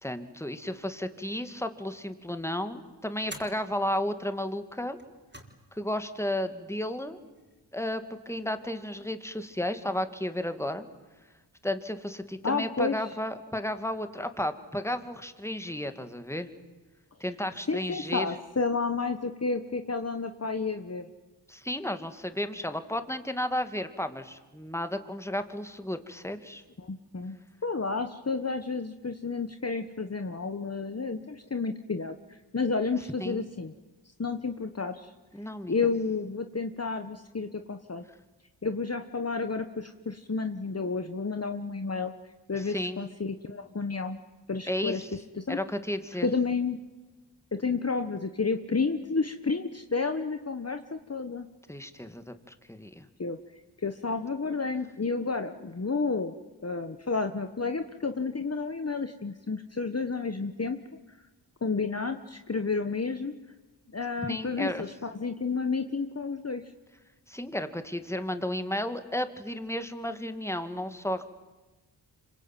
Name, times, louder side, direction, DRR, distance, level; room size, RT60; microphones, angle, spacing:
voice 1, 0.0-5.0 5.7-7.2 7.7-10.9 11.6-16.5 17.2-18.3 21.5-26.6 33.2-33.4 35.3-35.7 42.5-43.0 44.7-45.1 45.5-46.3 51.7-53.1 64.3-64.9 67.3-71.3, left 1 dB, 5° left, 9 dB, 2.4 m, -33 dB
sound 1, 1.7-2.1 3.2-3.6 4.9-5.6 5.9-6.0 7.1-7.6, right 1 dB, 25° right, 4.8 m, -47 dB
voice 2, 12.4-12.9 17.7-21.1 26.8-33.7 34.2-35.1 35.7-38.0 38.6-42.1 42.5-44.2 44.5-45.0 45.4-45.6 46.2-46.8 47.5-51.5 53.2-53.4 53.8-56.3 56.6-60.8 61.1-61.2 61.6-63.4 63.9-66.6, left 4 dB, 35° left, 8 dB, 1.4 m, -31 dB
26.0 x 23.5 x 9.3 m, 1.2 s
cardioid pair, 45°, 45 cm